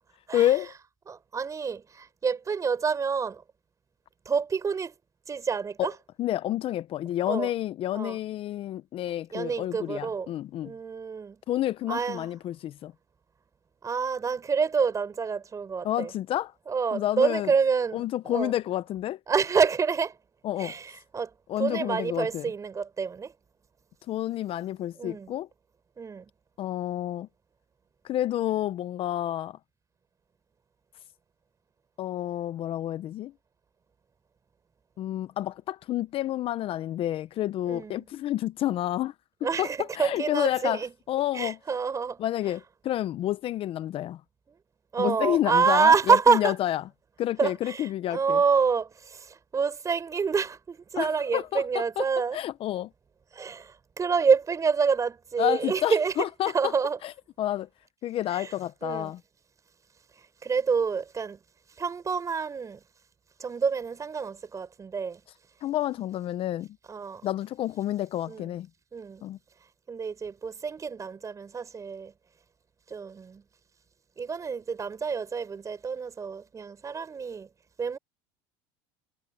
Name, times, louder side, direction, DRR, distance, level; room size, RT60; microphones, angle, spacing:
voice 1, 0.3-0.7 5.8-5.9 6.2-10.7 11.5-12.9 15.8-16.5 16.9-17.5 17.9-19.2 20.4-20.8 21.5-22.5 24.1-25.5 26.6-27.3 28.0-29.6 32.0-33.3 35.0-39.1 39.6-41.6 42.2-44.2 45.0-46.8 47.2-48.4 51.0-52.1 52.3-52.9 55.4-56.7 57.0-57.7 58.0-59.2 65.6-66.7 67.2-68.7 69.2-69.4, left 13 dB, 45° left, 0.8 m, -29 dB
voice 2, 1.1-3.4 4.3-5.0 5.3-5.9 7.3-7.5 7.9-8.2 9.3-10.3 10.6-11.4 11.9-12.3 13.8-16.1 16.7-18.5 19.3-20.2 20.6-21.3 21.6-23.3 25.0-25.3 26.0-26.3 37.7-38.1 39.4-40.9 41.3-42.2 44.9-46.5 47.4-52.4 53.3-56.1 56.5-57.0 58.3-58.5 58.8-59.1 60.4-61.4 61.8-62.8 63.4-65.2 66.9-67.3 68.3-68.4 68.9-69.2 69.9-72.1 72.9-73.4 74.2-77.5 77.8-78.0, right 5 dB, 25° right, 5.2 m, -27 dB
supercardioid pair, 110°, 13 cm